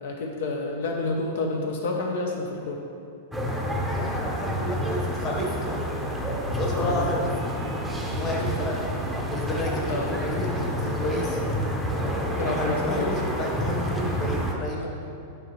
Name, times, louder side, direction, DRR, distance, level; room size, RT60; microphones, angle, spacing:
voice 1, 0.0-2.8 6.8-7.1 9.9-10.5 12.4-13.3, left 3 dB, 70° left, 1 dB, 0.8 m, -29 dB
sound 1, 3.3-14.6, equal, ahead, 0.7 m, -29 dB
voice 2, 3.9-6.2 6.5-7.3 7.7-8.8 9.2-11.4 11.9-15.0, left 1 dB, 25° left, -1 dB, 1.2 m, -31 dB
10.5 x 5.1 x 3.2 m, 2.8 s
supercardioid pair, 155°, 0 cm